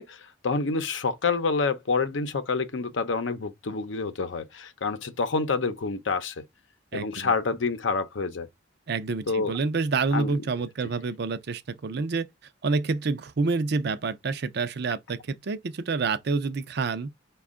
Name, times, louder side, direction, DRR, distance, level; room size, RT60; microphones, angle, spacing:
voice 1, 0.0-6.3 6.9-8.5 9.3-9.5 10.1-10.3, left 4 dB, 85° left, 0.7 m, -28 dB
voice 2, 6.9-7.3 8.9-12.3 12.6-17.1, right 4 dB, 60° right, 0.5 m, -28 dB
5.1 x 2.3 x 3.6 m
head